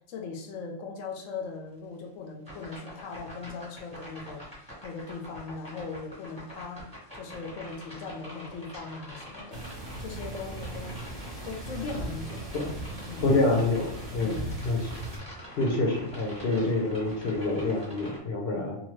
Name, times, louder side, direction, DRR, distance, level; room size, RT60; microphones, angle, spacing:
voice 1, 0.1-6.9 7.1-9.6 10.0-11.0 11.4-12.8 13.1-13.3 14.1-14.5, left 4 dB, 85° left, 2 dB, 1.0 m, -39 dB
sound 1, 2.5-18.2, equal, 5° left, 0.9 m, -45 dB
sound 2, 9.5-15.2, right 2 dB, 35° right, 0.7 m, -39 dB
voice 2, 13.2-14.3 14.6-14.9 15.6-18.8, left 2 dB, 60° left, -1 dB, 0.8 m, -27 dB
2.8 x 2.3 x 3.0 m, 0.76 s
omnidirectional pair, 1.3 m